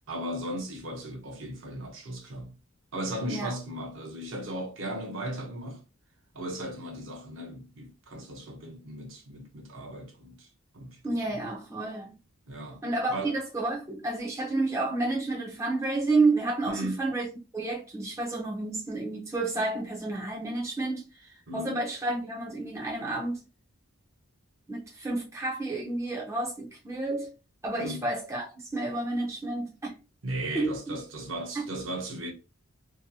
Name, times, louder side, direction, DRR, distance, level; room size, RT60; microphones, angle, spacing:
voice 1, 0.1-2.5 2.9-5.8 6.3-10.5 10.7-11.0 12.5-12.8 13.1-13.4 16.7-17.0 21.5-21.9 27.8-28.0 30.2-32.3, right 1 dB, 60° right, 0.6 m, -36 dB
voice 2, 11.0-12.2 12.8-17.3 17.5-23.4 24.7-27.3 27.6-29.9 30.5-31.0 31.5-31.6, right 2 dB, 15° right, 0.5 m, -30 dB
2.7 x 2.6 x 2.2 m
head